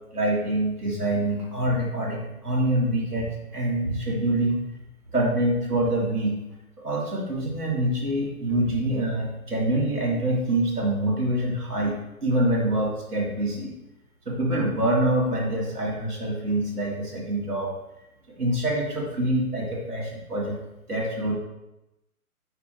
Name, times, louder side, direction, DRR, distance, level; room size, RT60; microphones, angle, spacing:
voice 1, 0.1-4.6 5.1-6.4 6.8-13.7 14.3-17.7 18.4-20.6 20.9-21.3, right 1 dB, 85° right, -4 dB, 2.9 m, -25 dB
9.2 x 6.1 x 3.5 m, 0.93 s
figure-of-eight pair, 135°, 44 cm